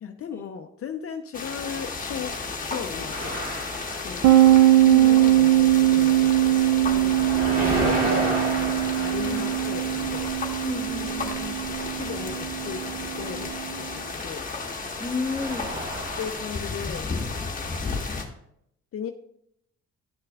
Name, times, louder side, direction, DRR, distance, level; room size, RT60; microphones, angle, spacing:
voice 1, 0.0-2.3 2.6-3.4 4.0-4.2 5.0-6.5 6.8-7.2 7.8-10.3 11.7-13.5 13.8-14.5 16.2-17.1 18.9-19.1, left 7 dB, 50° left, 6 dB, 0.7 m, -36 dB
sound 1, 1.3-18.2, left 4 dB, 25° left, 1.5 m, -33 dB
sound 2, 3.1-4.9 5.2-16.3, right 1 dB, 30° right, 2.2 m, -34 dB
sound 3, 4.2-13.7, right 14 dB, 85° right, 0.6 m, -21 dB
voice 2, 4.8-5.2 9.2-9.5 10.6-11.7 15.0-15.8, left 3 dB, 10° left, 2 dB, 1.3 m, -32 dB
11.5 x 6.5 x 2.4 m, 0.74 s
cardioid pair, 90°, 30 cm